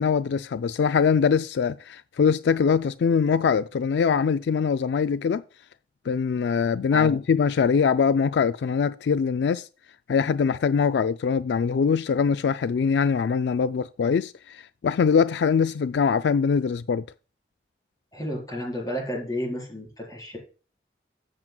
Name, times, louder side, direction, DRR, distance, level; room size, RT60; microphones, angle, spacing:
voice 1, 0.0-5.4 6.1-9.7 10.1-17.0, left 6 dB, 75° left, 0.3 m, -23 dB
voice 2, 18.1-20.4, equal, 20° left, 4.6 m, -32 dB
13.5 x 7.5 x 2.3 m
head